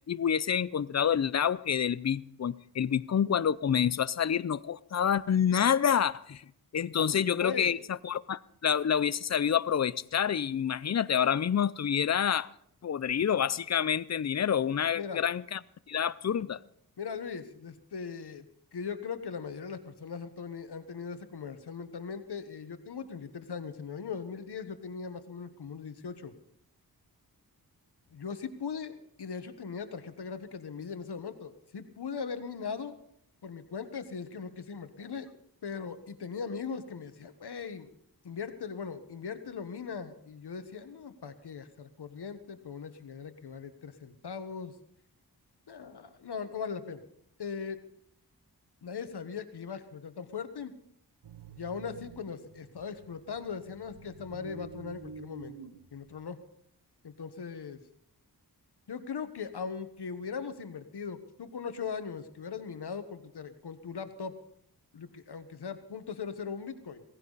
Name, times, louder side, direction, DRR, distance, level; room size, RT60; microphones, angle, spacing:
voice 1, 0.1-6.4 6.7-7.8 8.0-12.5 12.8-15.6 15.9-16.6, left 8 dB, 45° left, 18 dB, 0.5 m, -28 dB
voice 2, 7.0-7.8 14.9-15.2 17.0-18.4 18.7-26.3 28.1-33.0 33.4-35.3 35.6-37.9 38.2-44.7 45.7-47.0 47.4-47.8 48.8-50.7 51.6-55.5 55.9-56.4 57.0-57.8 58.9-64.3 64.9-67.0, left 6 dB, 85° left, 10 dB, 1.3 m, -39 dB
sound 1, 51.2-56.3, right 5 dB, 85° right, 1.1 m, -49 dB
17.0 x 16.0 x 4.1 m, 0.70 s
wide cardioid pair, 100°, 39 cm